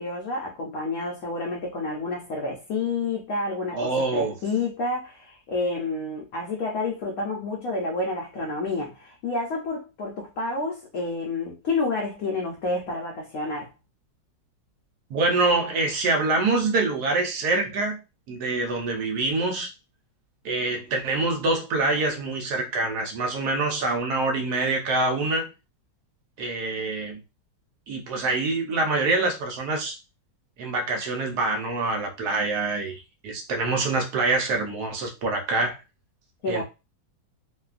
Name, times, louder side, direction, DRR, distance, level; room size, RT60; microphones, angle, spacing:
voice 1, 0.0-13.7 36.4-36.6, left 3 dB, 65° left, -1 dB, 1.0 m, -29 dB
voice 2, 3.7-4.3 15.1-18.0 18.3-19.7 20.4-25.5 26.4-27.2 27.9-30.0 30.6-35.8 36.5-36.6, right 3 dB, 70° right, 3 dB, 1.1 m, -25 dB
3.1 x 2.2 x 2.4 m, 0.27 s
omnidirectional pair, 1.9 m